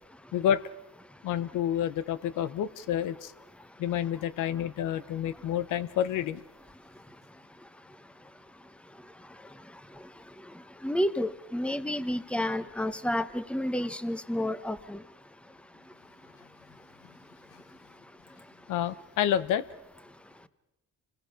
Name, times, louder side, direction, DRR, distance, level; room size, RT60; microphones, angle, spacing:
voice 1, 0.3-0.6 1.2-3.3 3.8-6.4 18.7-19.7, left 10 dB, 90° left, 15 dB, 0.9 m, -29 dB
voice 2, 10.8-15.0, left 1 dB, 5° left, 14 dB, 1.0 m, -30 dB
28.0 x 21.5 x 5.1 m, 0.91 s
cardioid pair, 90°, 30 cm